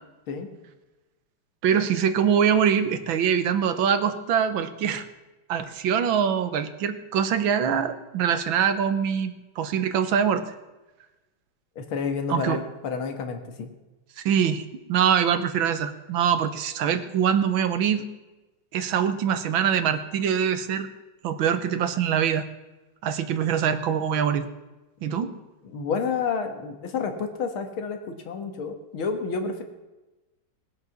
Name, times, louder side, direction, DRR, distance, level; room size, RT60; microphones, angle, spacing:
voice 1, 1.6-5.1 5.5-10.5 12.3-12.6 14.2-18.1 18.7-20.9 21.2-22.5 23.0-24.5 25.0-25.3, right 8 dB, 80° right, 11 dB, 1.7 m, -24 dB
voice 2, 11.8-13.7 25.1-25.3 25.6-29.6, left 5 dB, 85° left, 6 dB, 2.4 m, -30 dB
19.0 x 7.9 x 7.1 m, 1.1 s
omnidirectional pair, 2.2 m